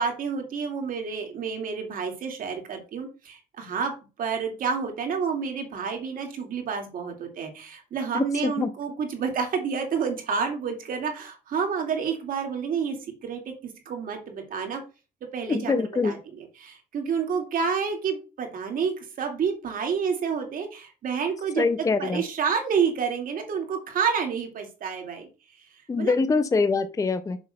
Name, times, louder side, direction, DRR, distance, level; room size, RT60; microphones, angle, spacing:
voice 1, 0.0-14.8 15.2-25.3 25.6-25.7 26.0-26.1, right 6 dB, 55° right, 4 dB, 2.8 m, -29 dB
voice 2, 8.1-8.7 15.5-16.1 21.6-22.2 25.9-27.4, left 4 dB, 20° left, 11 dB, 0.6 m, -24 dB
7.0 x 3.9 x 6.6 m, 0.32 s
cardioid pair, 110°, 17 cm